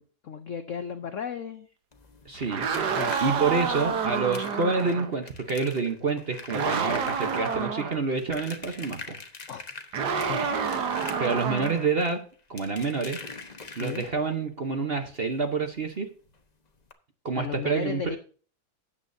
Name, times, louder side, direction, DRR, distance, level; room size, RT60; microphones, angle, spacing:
voice 1, 0.0-1.7 3.0-3.2 9.5-9.6 10.2-10.6 13.8-14.0 17.3-18.2, left 7 dB, 80° left, 9 dB, 0.6 m, -35 dB
sound 1, 1.9-14.4 15.9-16.0 16.3-16.4 16.8-16.9, left 3 dB, 30° left, 0.8 m, -44 dB
voice 2, 2.2-2.7 3.2-9.2 11.2-12.2 12.5-13.2 13.7-16.1 17.2-18.0, right 4 dB, 40° right, 5 dB, 0.9 m, -28 dB
sound 2, 2.3-5.1 6.5-8.0 9.9-11.9, right 6 dB, 60° right, 1.6 m, -28 dB
13.0 x 8.8 x 2.7 m, 0.41 s
omnidirectional pair, 2.2 m